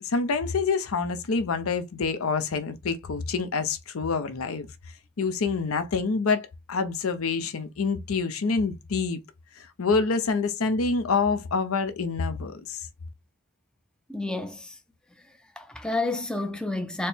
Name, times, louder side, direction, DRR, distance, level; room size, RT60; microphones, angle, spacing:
voice 1, 0.0-4.7 5.2-9.2 9.6-12.8, left 4 dB, 80° left, 0.6 m, -27 dB
voice 2, 14.1-14.8 15.6-17.1, left 2 dB, 5° left, 0.3 m, -30 dB
4.2 x 2.0 x 3.4 m
head